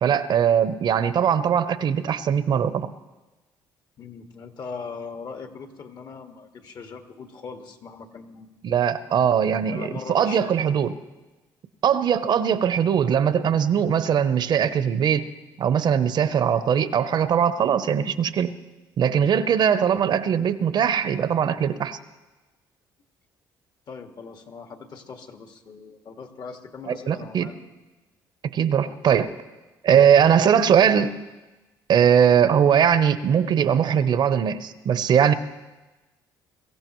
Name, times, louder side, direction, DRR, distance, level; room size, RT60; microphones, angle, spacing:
voice 1, 0.0-2.9 8.6-10.9 11.8-15.3 15.6-18.5 19.0-22.0 26.9-27.5 28.4-29.3 29.8-31.2 31.9-35.3, right 8 dB, 60° right, 13 dB, 0.8 m, -20 dB
voice 2, 4.0-8.5 9.7-10.6 23.9-27.6, left 5 dB, 55° left, 5 dB, 1.8 m, -40 dB
23.0 x 15.0 x 3.1 m, 1.1 s
supercardioid pair, 75°, 9 cm